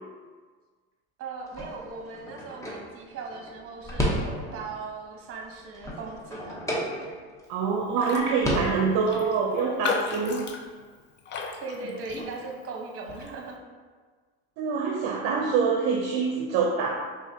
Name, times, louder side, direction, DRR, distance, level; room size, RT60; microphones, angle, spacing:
voice 1, 1.2-6.6 11.6-13.6, right 3 dB, 45° right, 1 dB, 1.0 m, -38 dB
sound 1, 1.5-4.8 5.2-7.5 7.8-7.9 8.2-9.3, equal, 10° left, 0.9 m, -32 dB
voice 2, 7.5-10.5 14.6-16.9, right 5 dB, 60° right, 1 dB, 0.6 m, -25 dB
Raindrop, 8.0-8.3 8.6-8.7 9.1-12.6 13.1-13.3, left 4 dB, 35° left, 0.5 m, -35 dB
4.8 x 3.5 x 2.8 m, 1.5 s
supercardioid pair, 110°, 31 cm